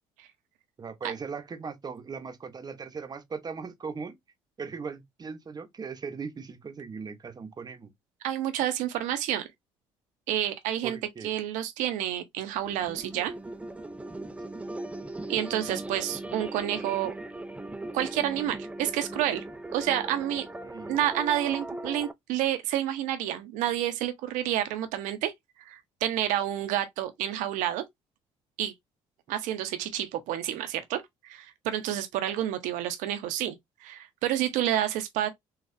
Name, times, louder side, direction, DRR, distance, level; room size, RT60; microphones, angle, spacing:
voice 1, 0.8-4.2 4.6-7.9 10.8-11.3 14.5-14.7 20.6-21.0, right 5 dB, 30° right, 0.8 m, -39 dB
voice 2, 8.2-9.5 10.3-11.0 11.2-13.3 15.3-17.1 17.9-19.4 19.7-20.5 20.9-25.3 25.7-27.8 28.6-28.7 29.3-33.5 33.8-35.3, right 12 dB, 75° right, 0.8 m, -29 dB
sound 1, 12.5-22.1, right 2 dB, 10° right, 0.4 m, -39 dB
4.1 x 2.4 x 2.5 m
supercardioid pair, 75°, 13 cm